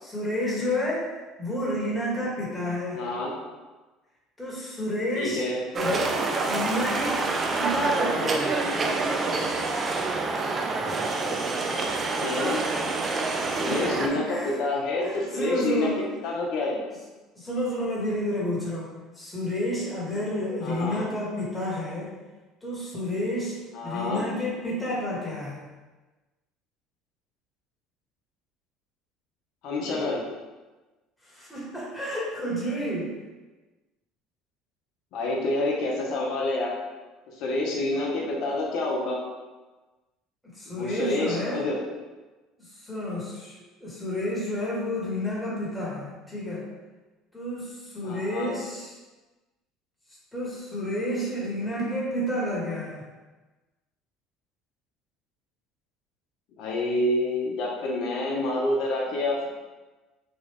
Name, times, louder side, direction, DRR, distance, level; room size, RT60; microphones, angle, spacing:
voice 1, 0.0-3.0 4.4-5.4 5.7-6.0 6.4-7.2 7.6-8.6 13.5-14.5 15.0-16.0 17.3-18.9 19.1-22.1 22.6-23.6 23.8-25.6 31.2-33.1 37.9-38.0 40.4-41.6 42.6-46.7 47.3-48.9 50.3-53.1, left 1 dB, 5° left, -7 dB, 1.2 m, -30 dB
voice 2, 2.9-3.3 5.1-5.7 12.1-12.6 13.6-15.9 16.2-16.8 20.6-21.0 23.7-24.2 29.6-30.2 35.1-36.7 37.4-39.2 40.7-41.8 48.0-48.5 56.6-59.5, left 2 dB, 65° left, -2 dB, 0.8 m, -28 dB
sound 1, 5.7-14.1, right 3 dB, 35° right, 0.4 m, -27 dB
3.1 x 2.4 x 3.4 m, 1.2 s
supercardioid pair, 80°, 0 cm